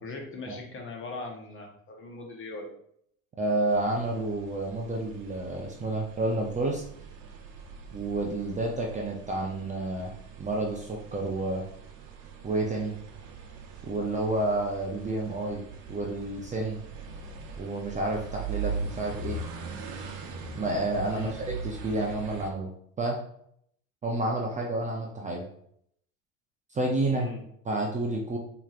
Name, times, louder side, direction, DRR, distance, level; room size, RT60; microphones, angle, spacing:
voice 1, 0.0-2.8 21.0-21.3 27.1-27.4, left 3 dB, 35° left, 1 dB, 1.0 m, -40 dB
voice 2, 3.4-6.8 7.9-11.7 12.4-12.9 13.8-15.6 15.9-16.8 17.6-19.4 20.5-22.7 23.0-23.2 24.0-25.5 26.7-27.3 27.7-28.4, right 2 dB, 20° right, -1 dB, 0.5 m, -30 dB
sound 1, 3.7-22.5, right 5 dB, 60° right, 0.8 m, -41 dB
4.4 x 2.9 x 2.5 m, 0.68 s
supercardioid pair, 105°, 38 cm